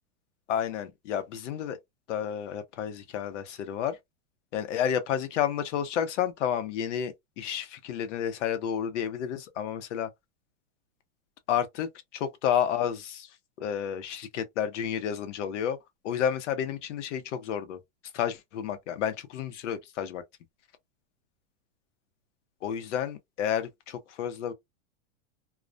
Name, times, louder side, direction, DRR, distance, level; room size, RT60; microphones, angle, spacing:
voice 1, 0.5-1.8 2.1-4.0 4.5-10.1 11.5-13.3 13.6-15.8 16.0-17.8 18.1-20.2 22.6-24.5, left 9 dB, 80° left, 0.8 m, -31 dB
2.3 x 2.1 x 2.4 m
supercardioid pair, 145°, 36 cm